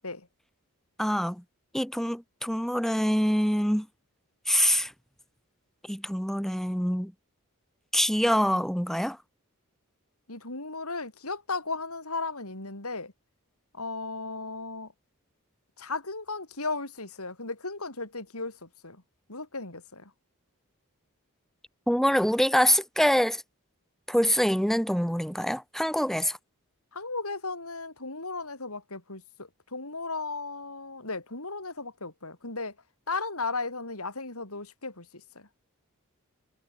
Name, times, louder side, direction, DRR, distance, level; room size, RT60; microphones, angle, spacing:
voice 1, 1.0-1.4 1.7-3.9 4.5-4.9 5.9-7.1 7.9-9.2 21.9-23.4 24.1-26.4, equal, ahead, 3.3 m, -25 dB
voice 2, 10.3-13.1 13.7-14.9 15.8-19.0 19.3-20.1 26.9-32.8 33.1-35.5, left 3 dB, 85° left, 6.8 m, -35 dB
head